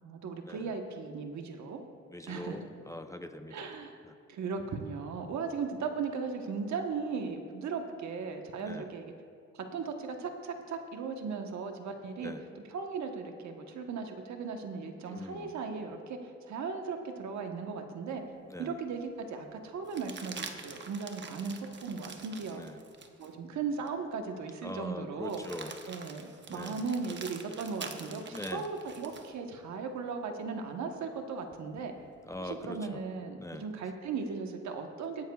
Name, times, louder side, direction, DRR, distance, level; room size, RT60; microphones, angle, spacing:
voice 1, 0.0-1.8 2.3-2.5 3.5-4.0 4.3-9.1 9.5-12.3 12.7-16.2 16.5-18.2 18.6-22.6 23.2-25.4 25.9-31.9 32.6-35.2, right 5 dB, 65° right, 4 dB, 1.2 m, -37 dB
voice 2, 2.1-3.7 4.0-4.2 8.6-8.9 12.2-12.4 15.0-15.5 18.4-18.8 22.5-22.8 24.6-25.7 26.5-26.9 28.3-28.7 32.3-33.0 33.4-33.7, left 1 dB, 10° left, 7 dB, 0.6 m, -42 dB
sound 1, 18.3-18.4 19.9-23.3 23.9-24.0 25.2-29.3 31.5-32.4, right 5 dB, 35° right, 1.0 m, -46 dB
18.5 x 10.0 x 2.4 m, 2.4 s
cardioid pair, 90°, 30 cm